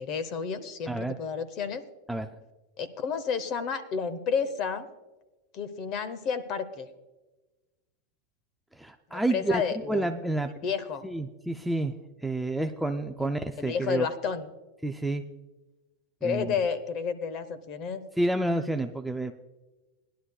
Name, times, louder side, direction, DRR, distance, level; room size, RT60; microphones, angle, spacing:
voice 1, 0.0-1.8 2.8-4.9 5.5-6.9 9.1-10.1 10.6-11.1 13.2-13.3 13.6-14.5 16.2-18.0, left 6 dB, 30° left, 13 dB, 0.8 m, -31 dB
voice 2, 0.9-1.2 2.1-2.3 8.8-10.5 11.0-11.9 12.2-14.1 14.8-15.2 16.2-16.5 18.2-19.3, right 2 dB, ahead, 5 dB, 0.3 m, -29 dB
19.0 x 11.0 x 2.3 m, 1.1 s
supercardioid pair, 170°, 0 cm